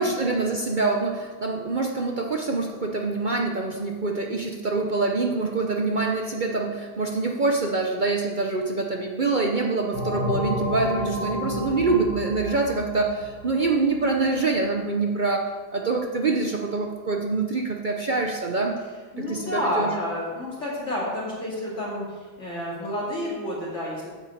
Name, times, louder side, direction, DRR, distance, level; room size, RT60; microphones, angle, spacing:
voice 1, 0.0-18.8 19.2-19.9, right 3 dB, 65° right, 1 dB, 0.4 m, -25 dB
sound 1, 9.9-14.3, left 1 dB, 90° right, 3.1 m, -31 dB
voice 2, 19.1-24.1, left 1 dB, 40° left, -6 dB, 2.9 m, -30 dB
9.1 x 6.1 x 7.8 m, 1.4 s
omnidirectional pair, 2.0 m